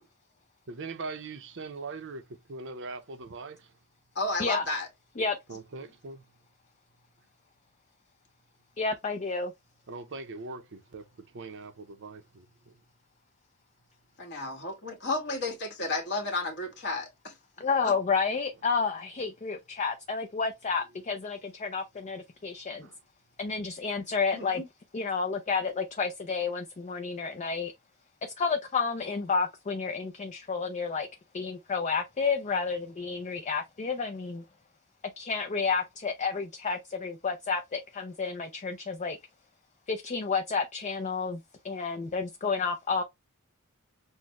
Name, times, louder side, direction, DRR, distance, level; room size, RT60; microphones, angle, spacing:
voice 1, 0.7-2.2 2.5-3.7 5.5-6.2 9.9-12.7 22.8-22.9, right 3 dB, 55° right, 0.6 m, -41 dB
voice 2, 4.1-4.9 14.2-17.3 17.8-17.9 24.3-24.6, left 2 dB, 50° left, 1.6 m, -32 dB
voice 3, 8.8-9.5 17.6-22.9 23.4-24.6 24.9-27.7 28.4-31.1 31.3-34.4 35.2-39.2 39.9-41.4 41.6-43.0, left 5 dB, 35° left, 0.5 m, -30 dB
6.3 x 2.1 x 2.9 m
head